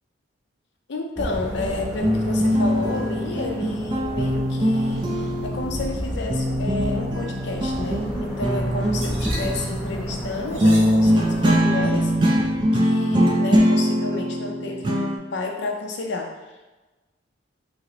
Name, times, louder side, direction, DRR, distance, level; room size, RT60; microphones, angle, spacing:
voice 1, 0.9-12.1 12.7-16.6, left 3 dB, 60° left, 2 dB, 0.4 m, -31 dB
sound 1, 1.2-11.6, equal, ahead, 0.8 m, -33 dB
sound 2, 1.5-6.0 6.3-15.2, equal, 25° right, 0.3 m, -22 dB
sound 3, 7.5-12.7, right 1 dB, 80° right, 0.8 m, -38 dB
3.0 x 2.9 x 2.8 m, 1.1 s
head